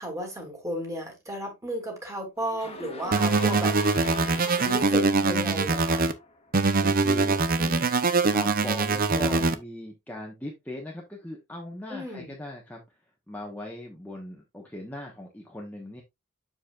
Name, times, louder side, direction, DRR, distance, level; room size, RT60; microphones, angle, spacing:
voice 1, 0.0-3.8 4.1-6.1 11.9-12.3, equal, 15° right, 2.8 m, -34 dB
sound 1, 2.4-6.6, left 2 dB, 25° left, 1.6 m, -41 dB
sound 2, 3.1-6.1 6.5-9.6, right 3 dB, 40° right, 0.7 m, -23 dB
voice 2, 6.8-13.0 13.3-16.0, left 1 dB, 5° left, 1.2 m, -39 dB
7.2 x 7.1 x 2.4 m
head